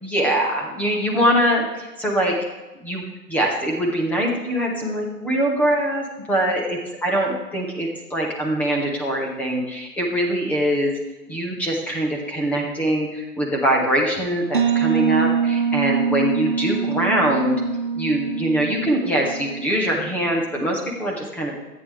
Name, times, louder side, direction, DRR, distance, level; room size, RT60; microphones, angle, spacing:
voice 1, 0.0-2.4 2.8-3.0 3.3-11.0 11.3-17.6 17.9-21.5, right 1 dB, 5° left, 0 dB, 0.7 m, -23 dB
sound 1, 14.5-20.1, right 6 dB, 35° right, 0.5 m, -24 dB
14.0 x 9.2 x 3.4 m, 1.1 s
hypercardioid pair, 140°, 48 cm